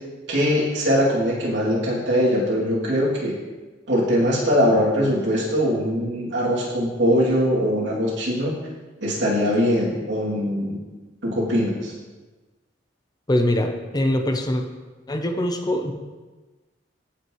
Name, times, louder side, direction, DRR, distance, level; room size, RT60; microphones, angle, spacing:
voice 1, 0.3-3.3 3.9-8.6 9.0-10.8 11.2-11.9, equal, 75° right, -6 dB, 2.9 m, -21 dB
voice 2, 13.3-14.6 15.1-15.9, left 1 dB, 20° left, 5 dB, 0.8 m, -23 dB
15.0 x 5.9 x 3.2 m, 1.2 s
head